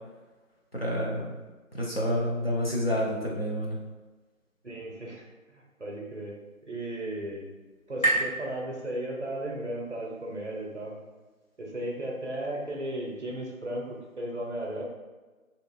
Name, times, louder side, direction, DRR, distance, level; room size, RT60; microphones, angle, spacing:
voice 1, 0.7-1.3 1.7-3.8, equal, 45° left, -4 dB, 0.5 m, -28 dB
voice 2, 4.6-7.5 7.9-11.0 11.6-14.8, right 1 dB, 55° right, -2 dB, 0.5 m, -35 dB
sound 1, 5.7-9.4, right 2 dB, 70° left, 1.2 m, -34 dB
2.8 x 2.3 x 2.3 m, 1.3 s
figure-of-eight pair, 165°, 43 cm